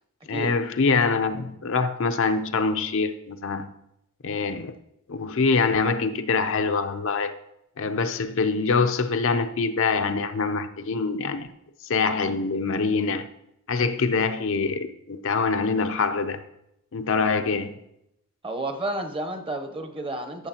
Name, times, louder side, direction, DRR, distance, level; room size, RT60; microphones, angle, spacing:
voice 1, 0.3-3.7 4.2-4.7 5.1-7.3 7.8-11.5 11.8-13.2 13.7-16.4 16.9-17.8, left 4 dB, 60° left, 8 dB, 0.6 m, -24 dB
voice 2, 18.4-20.5, right 1 dB, 25° right, 5 dB, 0.8 m, -31 dB
13.5 x 6.4 x 2.9 m, 0.82 s
head